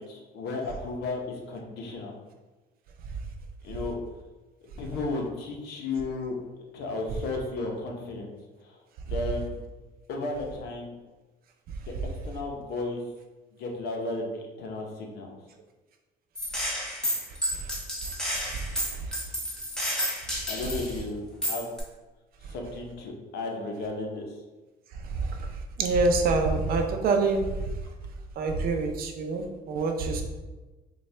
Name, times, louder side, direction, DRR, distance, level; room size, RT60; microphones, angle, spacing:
voice 1, 0.0-2.1 3.6-3.9 4.8-8.3 8.6-8.8 9.1-9.6 10.1-10.9 11.8-11.9 12.2-13.0 13.6-15.3 20.5-21.7 22.5-24.3, left 3 dB, 75° left, 1 dB, 0.8 m, -34 dB
Gunshot gunfire, 16.4-21.0 21.4-21.8, equal, 5° left, 0.9 m, -31 dB
voice 2, 25.8-27.5 28.4-30.2, right 3 dB, 60° right, 3 dB, 0.5 m, -25 dB
4.1 x 2.3 x 3.2 m, 1.2 s
cardioid pair, 110°, 17 cm